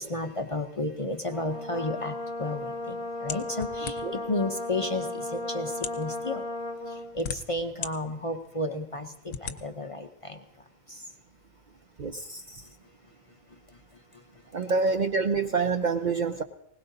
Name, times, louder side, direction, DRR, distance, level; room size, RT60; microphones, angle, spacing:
voice 1, 0.0-4.0 4.3-6.4 7.1-10.4, left 1 dB, 40° left, 5 dB, 0.5 m, -32 dB
Brass instrument, 1.3-7.1, left 2 dB, 30° right, 2.9 m, -35 dB
sound 1, 3.3-4.3 5.1-5.2 5.7-6.1 6.8-7.9 8.4-8.5 9.3-9.6, left 7 dB, 65° left, 1.0 m, -36 dB
voice 2, 12.0-12.6 14.5-16.4, right 4 dB, 55° right, 7 dB, 0.5 m, -27 dB
20.5 x 19.0 x 2.7 m, 0.80 s
omnidirectional pair, 1.4 m